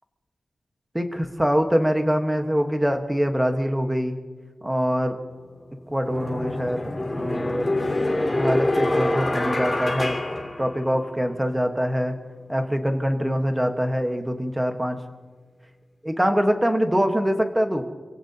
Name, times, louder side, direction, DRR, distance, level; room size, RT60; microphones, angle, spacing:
voice 1, 0.9-4.2 4.6-5.2 5.9-6.8 7.2-8.0 8.3-10.2 10.6-12.1 12.5-15.0 16.0-17.8, equal, 10° right, 5 dB, 1.3 m, -24 dB
sound 1, 5.3-5.4 6.0-11.2, left 1 dB, 20° left, 2.6 m, -26 dB
27.5 x 16.5 x 2.8 m, 1.4 s
wide cardioid pair, 160°, 0 cm